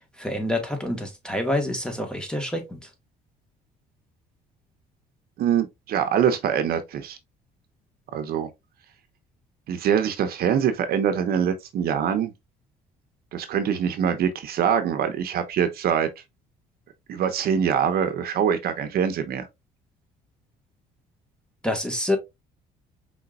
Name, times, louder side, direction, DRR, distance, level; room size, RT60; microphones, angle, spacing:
voice 1, 0.2-2.8 21.6-22.2, left 1 dB, 5° left, 1.5 m, -27 dB
voice 2, 5.4-7.2 8.1-8.5 9.7-12.3 13.3-16.1 17.1-19.5, right 8 dB, 65° right, 0.9 m, -24 dB
5.1 x 3.8 x 2.5 m
cardioid pair, 110°, 17 cm